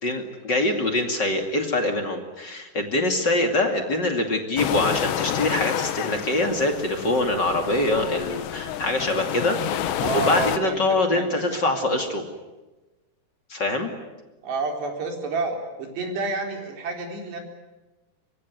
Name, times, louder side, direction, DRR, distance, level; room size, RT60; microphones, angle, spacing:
voice 1, 0.0-12.2 13.5-13.9, left 2 dB, 30° left, 4 dB, 2.3 m, -24 dB
sound 1, 4.6-10.6, left 11 dB, 90° left, 3.5 m, -29 dB
voice 2, 10.0-10.8 11.1-11.6 14.4-17.4, right 3 dB, 75° right, 3 dB, 6.1 m, -29 dB
24.5 x 24.0 x 9.6 m, 1.1 s
omnidirectional pair, 4.8 m